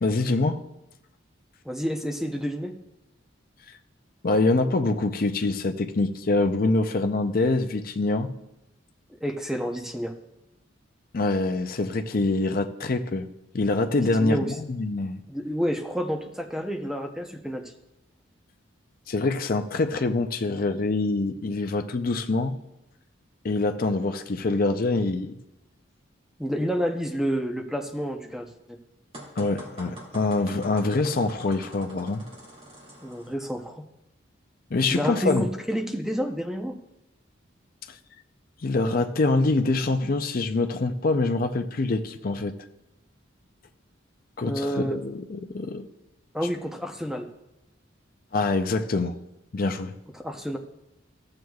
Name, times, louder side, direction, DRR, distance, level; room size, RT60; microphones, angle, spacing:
voice 1, 0.0-0.6 4.2-8.3 11.1-13.3 13.5-15.2 19.1-22.6 23.4-25.4 29.4-32.2 34.7-35.5 38.6-42.5 44.4-45.9 48.3-49.2 49.5-49.9, left 3 dB, 45° left, 0.5 m, -25 dB
voice 2, 1.6-2.7 9.2-10.1 13.9-14.5 15.3-17.6 26.4-28.8 33.0-33.8 34.9-36.8 44.4-45.0 46.3-47.3 50.2-50.6, equal, ahead, 0.7 m, -29 dB
sound 1, 29.1-33.3, right 1 dB, 30° right, 2.3 m, -45 dB
14.0 x 7.7 x 2.4 m
head